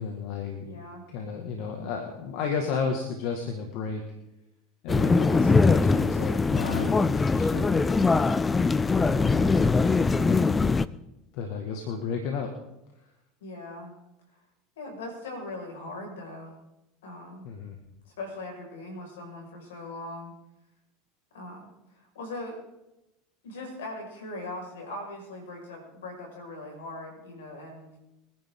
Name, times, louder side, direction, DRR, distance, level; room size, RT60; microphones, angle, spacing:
voice 1, 0.0-0.7 1.1-4.0 4.8-7.9 8.9-10.4 11.3-12.5 17.4-17.8, left 5 dB, 65° left, 3 dB, 2.0 m, -33 dB
voice 2, 0.6-1.0 13.4-13.9 14.8-16.5 17.0-17.5 18.0-20.3 21.3-22.6 23.4-28.0, left 2 dB, 80° left, 1 dB, 5.7 m, -40 dB
sound 1, 4.9-10.9, left 4 dB, 20° left, 0.6 m, -22 dB
24.0 x 10.5 x 3.9 m, 0.91 s
hypercardioid pair, 80°, 0 cm